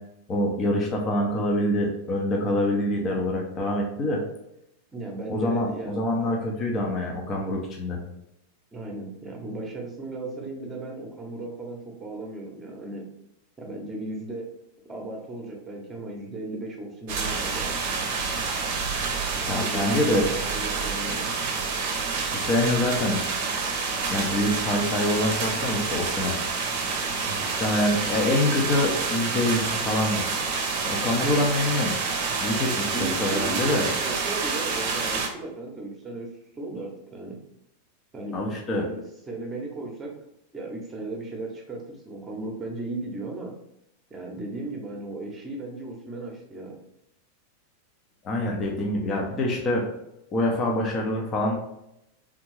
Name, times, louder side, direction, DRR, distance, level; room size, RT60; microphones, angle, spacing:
voice 1, 0.3-4.2 5.3-8.0 19.5-20.3 22.3-23.2 24.1-26.4 27.2-30.3 30.8-32.0 32.4-33.9 38.3-38.8 48.2-49.8 50.3-51.5, left 1 dB, 30° left, 0 dB, 0.8 m, -25 dB
voice 2, 4.9-6.1 8.7-13.1 13.6-14.5 14.9-17.8 19.6-21.3 27.4-27.5 32.9-37.4 38.1-40.1 40.5-43.5 44.1-46.8, right 2 dB, 20° right, 1 dB, 1.0 m, -36 dB
sound 1, 17.1-35.3, right 4 dB, 45° right, 0.7 m, -28 dB
3.6 x 3.5 x 3.2 m, 0.82 s
figure-of-eight pair, 90°, 0 cm